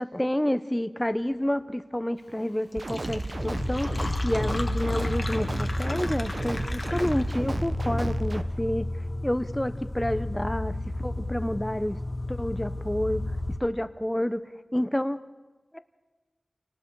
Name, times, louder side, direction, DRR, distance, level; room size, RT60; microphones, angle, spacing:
voice 1, 0.0-8.9 9.2-12.0 12.3-13.2 13.6-14.4 14.7-15.2 15.7-15.8, left 1 dB, 10° left, 12 dB, 0.8 m, -29 dB
Fill (with liquid), 2.4-2.5 2.7-7.5, left 2 dB, 50° left, 1.4 m, -39 dB
sound 1, 2.8-8.4, right 2 dB, 60° right, 1.0 m, -33 dB
sound 2, 3.3-13.6, left 1 dB, 30° left, 1.2 m, -31 dB
28.5 x 19.0 x 4.8 m, 1.2 s
wide cardioid pair, 50°, 0 cm